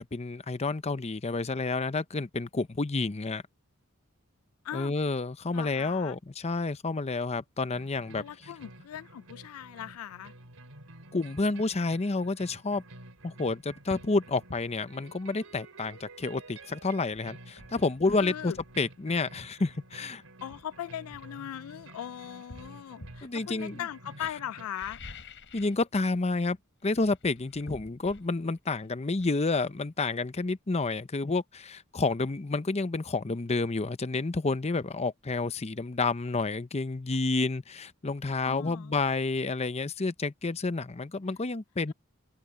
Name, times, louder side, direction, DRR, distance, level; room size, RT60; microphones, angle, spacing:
voice 1, 0.0-3.4 4.7-8.5 11.1-12.8 13.2-20.2 23.2-23.8 25.5-26.6 26.8-41.9, left 3 dB, 30° left, 0.7 m, -30 dB
voice 2, 5.5-6.2 8.2-10.3 18.2-18.6 20.4-25.0 38.4-38.9, left 10 dB, 80° left, 0.3 m, -39 dB
sound 1, 7.7-24.7, right 2 dB, 80° right, 3.6 m, -51 dB
sound 2, 13.2-13.3 13.9-14.1 14.5-14.7 16.6-16.7 17.1-18.8 19.8-20.0 20.5-21.9 22.5-23.3 24.6-25.9 26.1-26.5 26.8-30.4 30.7-30.8, left 2 dB, 60° left, 6.7 m, -49 dB
open air
head